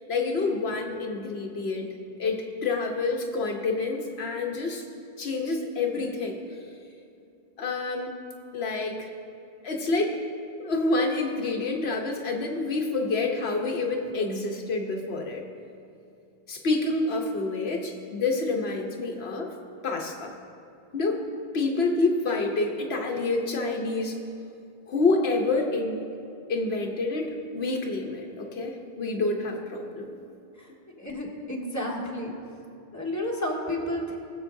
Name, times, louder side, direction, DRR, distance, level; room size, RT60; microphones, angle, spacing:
voice 1, 0.1-1.9 2.2-4.8 5.2-6.4 7.6-8.1 8.5-9.1 9.6-10.2 10.6-15.4 16.5-19.5 19.8-20.3 20.9-21.2 21.5-24.1 24.9-26.0 26.5-30.1, left 3 dB, 80° left, 2 dB, 1.1 m, -28 dB
voice 2, 31.0-32.3 32.9-34.2, left 1 dB, 15° left, -3 dB, 1.6 m, -31 dB
20.5 x 7.3 x 2.6 m, 2.6 s
omnidirectional pair, 1.0 m